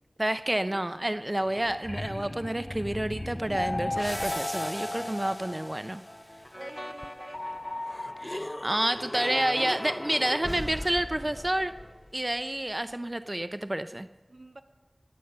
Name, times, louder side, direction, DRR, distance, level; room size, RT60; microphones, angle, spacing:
voice 1, 0.2-6.0 8.2-11.7 12.1-14.1, right 1 dB, 30° right, 11 dB, 0.5 m, -29 dB
sound 1, 1.1-1.2 1.4-4.5 7.0-7.1 7.8-10.9 13.4-13.5, left 1 dB, 30° left, 0.5 m, -39 dB
sound 2, 3.5-6.1 7.3-8.7, left 2 dB, 50° left, 0.8 m, -35 dB
sound 3, 3.9-12.4, equal, 15° left, 1.0 m, -40 dB
voice 2, 6.5-7.6 9.5-9.9 14.3-14.6, right 2 dB, 75° right, 8 dB, 1.0 m, -47 dB
20.5 x 8.0 x 6.7 m, 1.3 s
wide cardioid pair, 45°, 0 cm